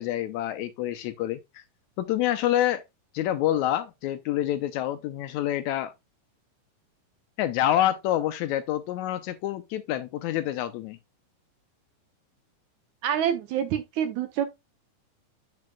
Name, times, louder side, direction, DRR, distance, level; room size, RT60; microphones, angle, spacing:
voice 1, 0.0-1.6 2.0-2.8 3.1-5.9 7.4-11.0, left 12 dB, 85° left, 1.6 m, -27 dB
voice 2, 13.0-14.5, right 9 dB, 75° right, 1.9 m, -27 dB
10.5 x 5.1 x 2.2 m
omnidirectional pair, 3.9 m